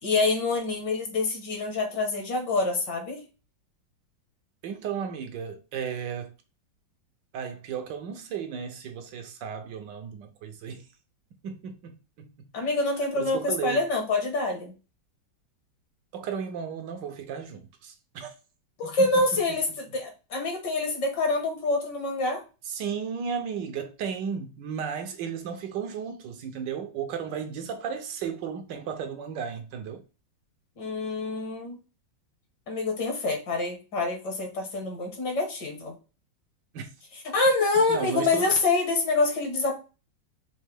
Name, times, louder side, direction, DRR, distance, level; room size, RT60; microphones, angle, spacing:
voice 1, 0.0-3.2 12.5-14.7 18.8-19.7 19.9-22.4 30.8-31.8 32.7-36.0 37.3-39.8, left 3 dB, 60° left, 1.9 m, -26 dB
voice 2, 4.6-6.3 7.3-10.9 11.4-12.5 13.1-13.8 16.1-18.3 18.8-19.1 22.6-30.0 36.7-36.9 37.9-38.5, right 7 dB, 70° right, 1.3 m, -34 dB
5.4 x 2.8 x 3.3 m
omnidirectional pair, 2.1 m